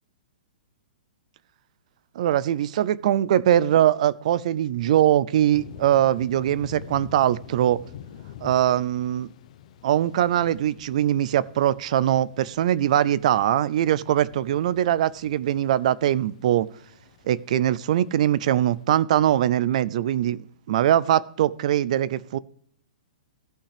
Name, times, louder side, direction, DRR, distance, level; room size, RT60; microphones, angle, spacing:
voice 1, 2.2-7.8 8.4-9.3 9.8-16.7 17.3-20.4 20.7-22.4, right 11 dB, 50° right, 0.4 m, -22 dB
sound 1, 5.5-18.8, left 10 dB, 50° left, 0.8 m, -47 dB
15.5 x 5.7 x 3.4 m
hypercardioid pair, 165°, 5 cm